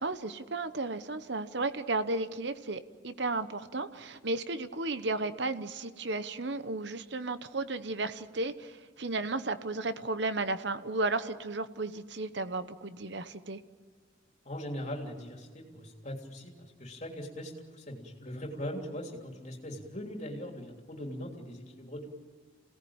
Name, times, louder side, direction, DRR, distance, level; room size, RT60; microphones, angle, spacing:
voice 1, 0.0-13.6, right 2 dB, 60° right, 12 dB, 1.0 m, -34 dB
voice 2, 14.4-22.1, equal, 35° left, 1 dB, 3.2 m, -40 dB
27.5 x 18.0 x 8.8 m, 1.5 s
head